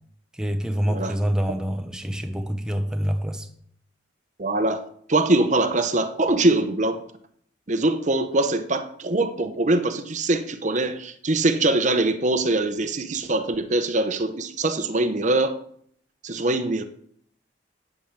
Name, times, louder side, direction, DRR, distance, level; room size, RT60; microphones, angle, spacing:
voice 1, 0.3-3.5, equal, 5° right, 0.8 m, -26 dB
voice 2, 4.4-7.0 7.7-15.6 16.2-16.8, right 2 dB, 40° right, 0.9 m, -23 dB
9.3 x 8.5 x 7.5 m
head